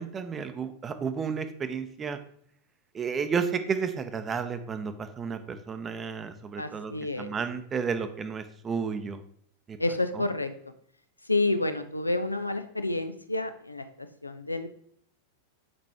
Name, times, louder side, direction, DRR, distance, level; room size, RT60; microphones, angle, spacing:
voice 1, 0.0-2.2 2.9-9.2 9.7-9.8, right 6 dB, 20° right, 10 dB, 0.6 m, -32 dB
voice 2, 6.6-7.3 9.8-10.5 11.2-14.7, left 2 dB, 85° left, 10 dB, 0.4 m, -29 dB
6.8 x 5.1 x 3.5 m, 0.65 s
figure-of-eight pair, 90°, 0 cm